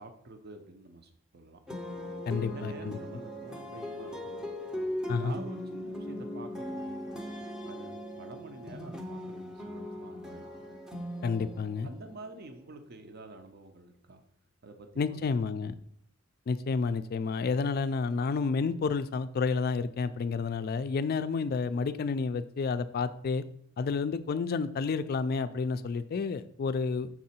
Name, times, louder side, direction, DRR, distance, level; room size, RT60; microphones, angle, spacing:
voice 1, 0.0-1.6 2.3-4.5 5.1-7.1 7.6-10.6 11.8-14.2 14.6-15.8, right 2 dB, 50° right, 7 dB, 0.6 m, -49 dB
sound 1, 1.7-12.9, equal, 5° right, 0.6 m, -39 dB
voice 2, 2.3-3.0 5.1-5.3 11.2-11.9 15.0-15.7 16.5-23.4 23.8-27.1, left 4 dB, 45° left, 13 dB, 0.3 m, -30 dB
6.0 x 3.7 x 4.3 m, 0.66 s
head